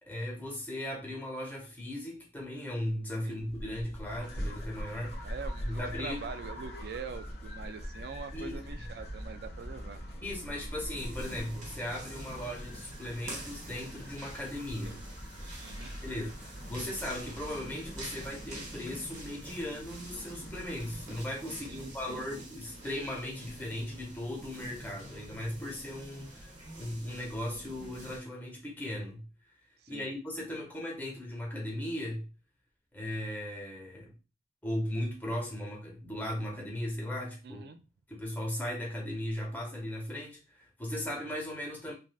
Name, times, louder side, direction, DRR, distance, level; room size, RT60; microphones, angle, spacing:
voice 1, 0.0-5.3 5.6-6.2 8.3-8.6 10.2-15.0 16.0-29.2 29.9-32.2 32.9-34.1 34.6-37.7 38.1-41.9, left 1 dB, 10° left, 0.9 m, -37 dB
sound 1, 3.4-11.7, equal, 35° left, 0.4 m, -43 dB
sound 2, 4.1-21.2, equal, 75° left, 1.2 m, -45 dB
voice 2, 5.2-10.0 14.8-15.0 15.6-15.9 21.5-22.3 29.8-30.1 37.4-37.8, right 5 dB, 60° right, 0.3 m, -44 dB
sound 3, 10.9-28.2, right 1 dB, 45° right, 1.1 m, -46 dB
3.3 x 2.5 x 2.3 m
head